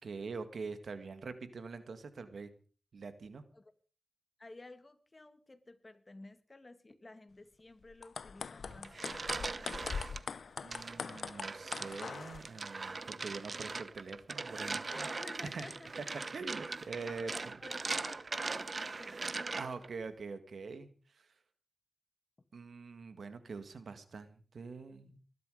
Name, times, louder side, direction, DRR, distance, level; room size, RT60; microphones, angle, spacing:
voice 1, 0.0-2.5 2.9-3.4 10.6-15.1 15.4-15.6 16.0-16.1 16.3-17.3 19.6-21.3 22.5-25.2, right 4 dB, 80° right, 11 dB, 2.0 m, -44 dB
voice 2, 4.4-9.6 14.9-15.9 17.1-19.4, left 2 dB, 35° left, 11 dB, 2.1 m, -53 dB
sound 1, 7.9-12.4, left 5 dB, 85° left, 0.7 m, -42 dB
sound 2, 8.7-10.2 10.7-19.9, right 3 dB, 55° right, 1.0 m, -40 dB
20.5 x 12.0 x 5.1 m, 0.40 s
cardioid pair, 55°, 0 cm